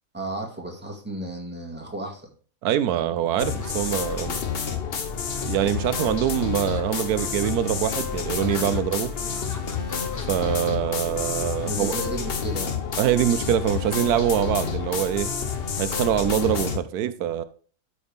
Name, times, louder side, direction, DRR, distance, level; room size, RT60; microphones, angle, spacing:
voice 1, 0.1-2.3 11.6-12.8, right 2 dB, 5° right, 1.9 m, -33 dB
voice 2, 2.6-4.4 5.5-9.1 10.3-11.9 13.0-15.3 15.8-17.4, right 11 dB, 85° right, 1.1 m, -24 dB
sound 1, 3.2-4.6 5.3-5.9 6.3-10.7, left 2 dB, 15° left, 0.6 m, -46 dB
sound 2, 3.4-16.8, left 6 dB, 45° left, 0.9 m, -29 dB
12.5 x 4.9 x 3.6 m
omnidirectional pair, 1.6 m